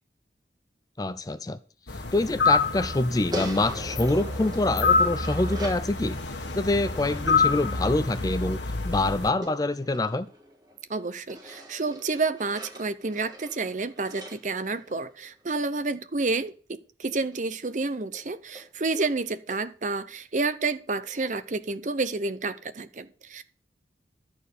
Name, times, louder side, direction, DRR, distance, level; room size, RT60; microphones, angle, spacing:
voice 1, 1.0-1.6 2.1-6.2 6.5-8.6 8.8-10.3, left 2 dB, 20° left, 0.4 m, -26 dB
sound 1, 1.9-9.3, left 4 dB, 80° left, 1.3 m, -27 dB
sound 2, 3.3-5.9 9.4-10.8 11.3-15.4 17.3-17.4 17.7-17.8 18.1-18.2 18.5-18.7 19.0-19.1 19.5-19.6, equal, 20° right, 4.4 m, -41 dB
voice 2, 10.9-23.4, right 3 dB, 45° right, 0.7 m, -30 dB
12.0 x 4.5 x 8.2 m
head